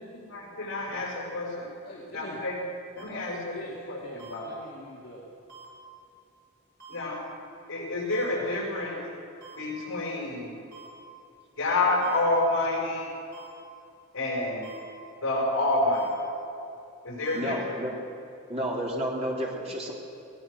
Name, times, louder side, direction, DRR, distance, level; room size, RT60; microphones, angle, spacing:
voice 1, 0.0-1.7 2.1-2.6 2.9-3.5 3.9-4.5 6.9-7.2 7.7-9.0 9.5-10.5 11.6-13.1 14.1-14.7 15.2-16.1 17.0-17.7, left 2 dB, 70° left, -1 dB, 5.7 m, -28 dB
voice 2, 1.8-2.4 3.1-5.3, equal, 45° left, -4 dB, 2.3 m, -44 dB
sound 1, 3.0-3.1 4.2-4.3 5.5-5.6 6.8-7.0 8.1-8.2 9.4-9.6 10.7-10.9 12.0-12.2 13.3-13.5 14.6-14.8 15.9-16.1 17.2-17.4, right 5 dB, 50° right, 6.7 m, -47 dB
voice 3, 17.3-17.9 18.5-19.9, equal, 30° right, -3 dB, 3.6 m, -31 dB
22.0 x 18.5 x 6.5 m, 2.7 s
head